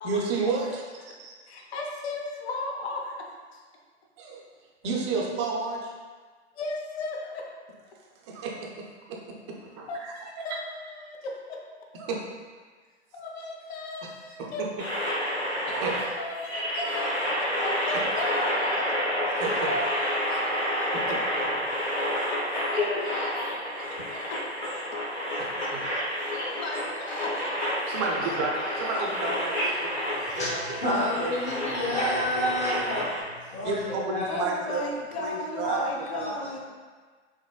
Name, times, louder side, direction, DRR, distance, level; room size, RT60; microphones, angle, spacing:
voice 1, 0.0-1.3 4.2-4.4 4.8-5.9 8.2-10.1 10.5-10.6 11.9-12.2 14.0-14.1 14.4-14.7 15.7-16.0 19.4-19.7 20.9-21.2 25.4-25.8 27.9-31.3 31.8-31.9 33.6-34.8 35.2-35.8 36.1-36.3, right 4 dB, 25° right, -1 dB, 0.4 m, -32 dB
voice 2, 1.5-3.3 3.5-3.6 6.6-7.5 9.9-11.6 13.1-14.6 16.2-18.9 19.3-24.4 26.3-27.4 27.9-28.9 29.5-29.9 30.1-30.4 31.5-32.9 34.3-36.6, left 2 dB, 65° left, 0 dB, 0.7 m, -36 dB
sound 1, 14.8-33.2, equal, 80° left, 1.2 m, -29 dB
voice 3, 30.3-34.4 35.6-36.3, left 1 dB, 20° left, -4 dB, 0.7 m, -30 dB
3.8 x 3.0 x 2.2 m, 1.5 s
figure-of-eight pair, 110°, 36 cm